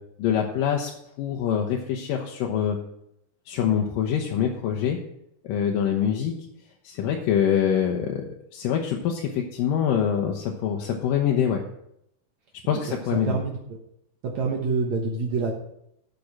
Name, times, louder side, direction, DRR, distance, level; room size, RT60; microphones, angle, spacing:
voice 1, 0.2-0.9 1.2-2.8 3.5-5.0 5.4-6.3 6.8-11.6 12.7-13.4, left 8 dB, 90° left, 0 dB, 2.7 m, -25 dB
voice 2, 13.2-13.6 14.2-15.5, right 4 dB, 65° right, 0 dB, 2.3 m, -26 dB
11.5 x 6.9 x 6.0 m, 0.75 s
omnidirectional pair, 3.8 m